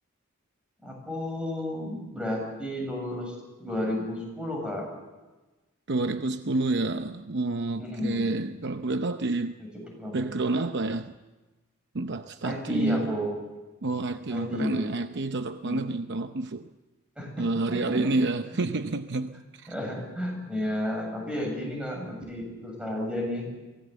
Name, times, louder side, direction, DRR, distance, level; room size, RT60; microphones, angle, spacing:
voice 1, 0.8-3.3 3.6-4.9 7.8-8.3 9.7-10.3 12.4-13.3 14.3-14.8 15.6-15.9 17.2-18.1 19.7-23.5, left 1 dB, 5° right, 7.8 m, -32 dB
voice 2, 5.9-9.6 10.1-11.2 11.9-13.2 13.8-16.7 17.4-19.7, right 2 dB, 55° right, 0.8 m, -29 dB
24.5 x 18.0 x 8.2 m
head